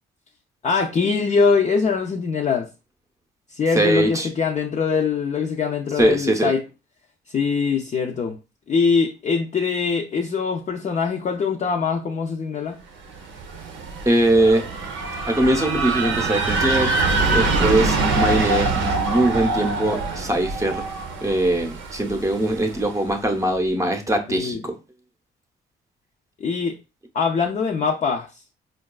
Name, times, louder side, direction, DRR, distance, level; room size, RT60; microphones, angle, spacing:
voice 1, 0.6-2.7 3.5-6.6 7.3-8.4 8.7-12.8 24.3-24.6 26.4-26.7 27.1-28.3, left 5 dB, 35° left, 0.5 m, -22 dB
voice 2, 3.7-4.3 6.0-6.5 14.1-14.6 15.3-16.9 17.3-20.8 21.2-24.7, right 1 dB, 15° right, 0.7 m, -21 dB
sound 1, 13.1-22.9, right 3 dB, 80° right, 0.7 m, -24 dB
4.5 x 2.3 x 2.2 m
cardioid pair, 90°, 20 cm